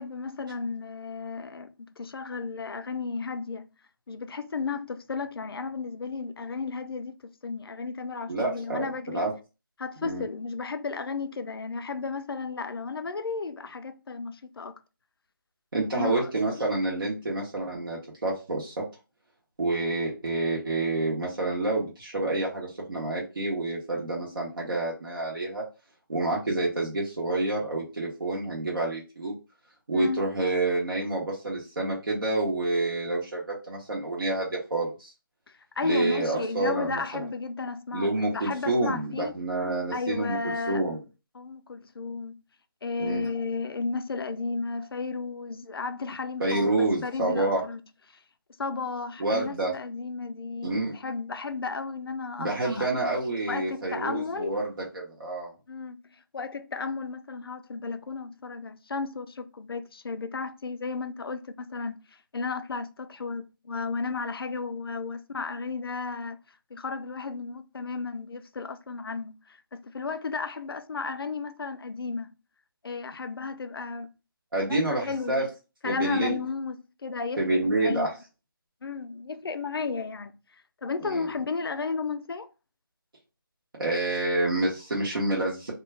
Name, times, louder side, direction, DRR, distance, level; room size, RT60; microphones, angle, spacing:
voice 1, 0.0-3.7 4.1-9.3 9.8-14.8 15.9-16.3 29.9-30.2 35.5-39.3 39.9-40.8 41.3-42.4 42.8-47.8 48.1-48.2 48.6-52.9 53.5-54.6 55.7-66.4 66.7-72.3 72.8-74.1 74.6-75.4 75.8-76.8 77.0-78.1 78.8-82.5, left 4 dB, 85° left, 0.4 m, -34 dB
voice 2, 8.3-8.9 9.1-9.3 10.0-10.2 15.7-18.8 19.6-25.6 26.1-29.4 29.9-35.1 35.8-37.2 37.9-41.0 43.0-43.3 46.4-47.6 49.2-49.7 50.6-50.9 52.4-55.5 74.5-75.4 75.8-76.4 77.4-78.1 81.0-81.3 83.8-85.7, right 2 dB, 65° right, 0.9 m, -28 dB
2.2 x 2.2 x 3.2 m
figure-of-eight pair, 170°, 12 cm